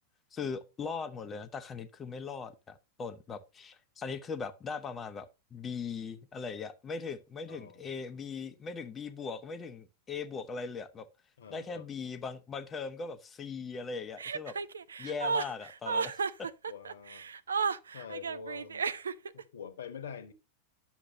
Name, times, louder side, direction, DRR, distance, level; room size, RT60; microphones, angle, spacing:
voice 1, 0.3-11.1 11.5-14.6 15.0-16.5, left 5 dB, 20° left, 1.0 m, -39 dB
voice 2, 7.5-7.9 11.4-11.9 16.7-17.3 17.9-18.8 19.3-20.3, left 7 dB, 65° left, 1.4 m, -45 dB
Chuckle chortle, 14.2-19.4, right 5 dB, 70° right, 0.5 m, -33 dB
9.9 x 7.1 x 2.8 m
figure-of-eight pair, 90°, 0 cm